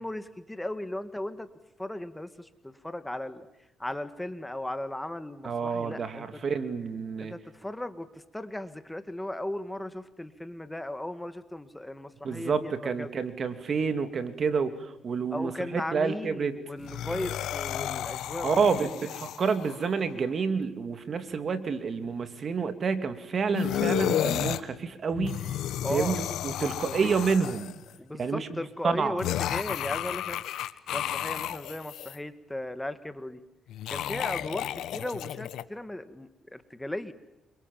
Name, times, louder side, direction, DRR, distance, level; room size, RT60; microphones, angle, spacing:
voice 1, 0.0-1.5 1.8-3.5 3.8-6.4 7.2-13.1 15.3-19.1 25.8-26.2 26.6-27.2 28.0-33.4 33.9-37.1, left 1 dB, 10° left, 11 dB, 1.8 m, -37 dB
voice 2, 5.4-7.3 12.2-16.5 18.4-25.4 25.9-27.7 28.2-28.5 28.8-29.2, right 5 dB, 45° right, 9 dB, 2.8 m, -29 dB
sound 1, 16.8-19.8 23.5-24.6 25.1-27.9 29.2-32.2 33.7-35.6, left 11 dB, 80° left, 1.3 m, -32 dB
28.5 x 25.0 x 7.4 m, 0.94 s
cardioid pair, 90°, 0 cm